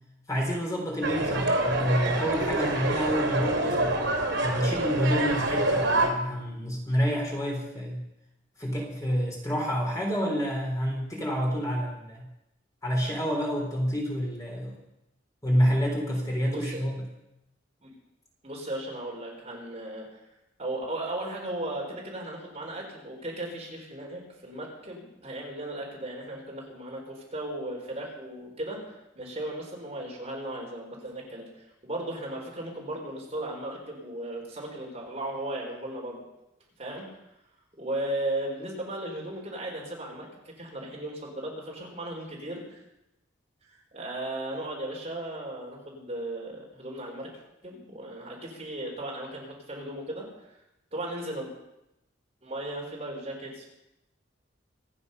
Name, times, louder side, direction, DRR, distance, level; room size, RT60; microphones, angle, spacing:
voice 1, 0.3-4.0 4.4-8.0 8.6-12.3 12.8-14.8 15.4-17.1, equal, 15° left, -1 dB, 3.6 m, -28 dB
sound 1, 1.0-6.1, right 2 dB, 75° right, 2.9 m, -26 dB
voice 2, 16.4-16.8 17.8-17.9 18.4-20.2 20.6-36.2 36.8-37.2 37.8-42.8 43.7-47.3 47.6-50.3 50.9-51.5 52.4-53.7, right 1 dB, 30° right, -2 dB, 4.2 m, -36 dB
26.0 x 9.5 x 5.5 m, 0.89 s
head